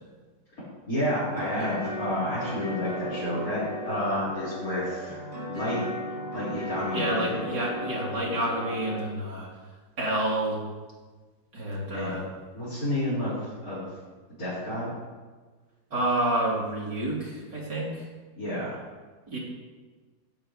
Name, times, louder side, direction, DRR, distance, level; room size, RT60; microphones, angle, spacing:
voice 1, 0.9-5.2 5.5-5.8 6.3-7.4 11.9-12.1 12.5-13.9 14.4-14.9 18.4-18.8, left 1 dB, 50° left, -12 dB, 6.0 m, -30 dB
sound 1, 1.1-9.1, left 1 dB, 90° right, 3.5 m, -36 dB
voice 2, 6.9-9.5 10.0-10.6 11.5-12.2 15.9-18.1 19.3-19.4, right 1 dB, 70° right, -5 dB, 4.4 m, -29 dB
15.5 x 15.0 x 3.4 m, 1.3 s
omnidirectional pair, 1.9 m